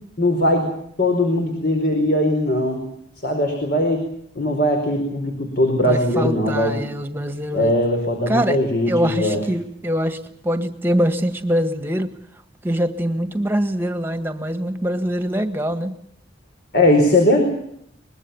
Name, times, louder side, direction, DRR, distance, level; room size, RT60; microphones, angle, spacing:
voice 1, 0.2-0.7 1.0-2.8 3.2-4.0 4.3-6.8 7.5-9.4 16.7-17.5, left 1 dB, 55° left, 4 dB, 4.8 m, -19 dB
voice 2, 5.8-7.7 8.3-8.6 8.9-10.2 10.4-12.1 12.6-15.9, equal, 10° right, 9 dB, 1.7 m, -23 dB
24.0 x 21.5 x 7.2 m, 0.71 s
head